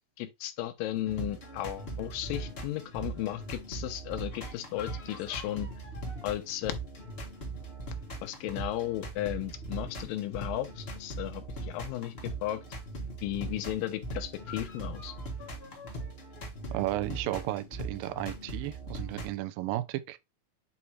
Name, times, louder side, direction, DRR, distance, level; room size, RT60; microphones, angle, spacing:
voice 1, 0.2-5.7 6.2-6.7 8.2-12.6 13.2-15.1, left 14 dB, 90° left, 2.4 m, -35 dB
sound 1, 0.9-19.3, right 2 dB, 40° left, 0.8 m, -40 dB
voice 2, 16.7-20.2, right 16 dB, 80° right, 2.3 m, -34 dB
8.3 x 2.8 x 4.7 m
omnidirectional pair, 4.0 m